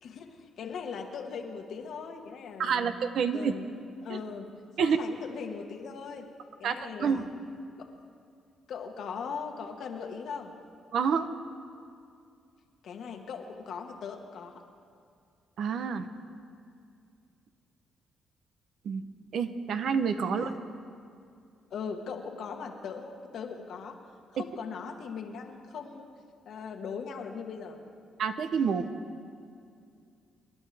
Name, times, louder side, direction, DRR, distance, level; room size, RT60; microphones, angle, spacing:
voice 1, 0.0-2.9 3.3-3.7 4.0-4.5 4.8-6.3 6.6-7.3 7.8-7.9 8.7-10.5 12.8-14.6 20.3-20.6 21.7-24.0 24.3-26.1 26.4-27.8, left 6 dB, 70° left, 4 dB, 1.4 m, -39 dB
voice 2, 2.6-3.5 4.1-4.2 4.8-5.0 6.6-7.2 10.9-11.3 15.6-16.1 18.8-19.0 19.3-20.5 28.2-28.9, right 6 dB, 65° right, 9 dB, 0.8 m, -28 dB
27.5 x 11.0 x 3.4 m, 2.4 s
cardioid pair, 90°, 0 cm